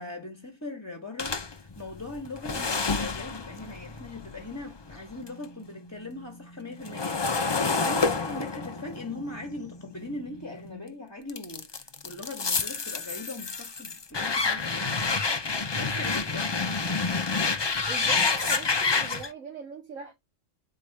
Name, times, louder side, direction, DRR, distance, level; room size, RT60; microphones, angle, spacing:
voice 1, 0.0-15.0 15.7-17.1, left 2 dB, 15° left, 1.2 m, -40 dB
sound 1, 1.2-5.4 5.8-10.7 11.3-19.3, left 4 dB, 35° left, 0.4 m, -29 dB
voice 2, 17.9-20.1, right 5 dB, 80° right, 2.2 m, -40 dB
7.6 x 4.7 x 3.4 m
omnidirectional pair, 1.3 m